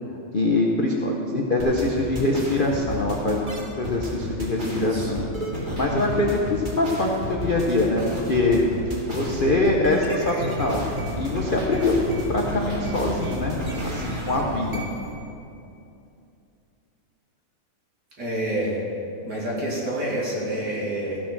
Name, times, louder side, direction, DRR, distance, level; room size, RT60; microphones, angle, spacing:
voice 1, 0.3-5.3 5.7-8.6 9.1-10.9 11.1-14.9, left 2 dB, 65° left, -1 dB, 0.5 m, -24 dB
sound 1, 1.6-15.1, equal, 25° right, 1.8 m, -31 dB
voice 2, 4.6-5.1 18.2-18.8 19.3-21.2, right 1 dB, 50° right, -5 dB, 3.0 m, -28 dB
15.0 x 6.4 x 5.9 m, 2.6 s
omnidirectional pair, 2.3 m